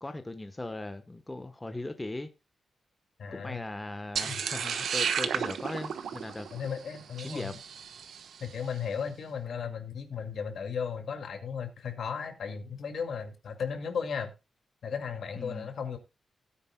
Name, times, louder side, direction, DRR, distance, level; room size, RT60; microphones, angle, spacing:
voice 1, 0.0-2.3 3.3-6.5 7.2-7.6 15.3-15.7, left 2 dB, 15° left, 1.0 m, -39 dB
voice 2, 3.2-3.6 4.2-4.4 6.5-7.5 8.4-14.3 14.8-16.0, left 6 dB, 70° left, 2.1 m, -35 dB
sound 1, 4.2-8.5, right 7 dB, 80° right, 1.1 m, -33 dB
17.0 x 9.6 x 2.2 m
wide cardioid pair, 125°, 0 cm